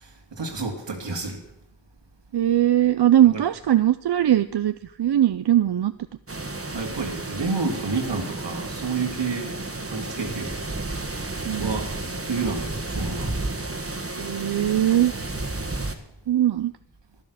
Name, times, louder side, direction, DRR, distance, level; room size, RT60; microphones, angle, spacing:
voice 1, 0.0-1.4 3.2-3.4 6.7-9.5 9.8-10.6 11.6-11.9 12.2-13.3, right 4 dB, 80° right, 3 dB, 2.2 m, -29 dB
voice 2, 2.3-5.9 11.4-11.7 14.2-15.1 16.3-16.7, right 12 dB, 65° right, 12 dB, 0.5 m, -20 dB
sound 1, 6.3-15.9, right 2 dB, 30° right, 1.5 m, -32 dB
11.0 x 10.5 x 6.7 m, 0.82 s
cardioid pair, 40°, 43 cm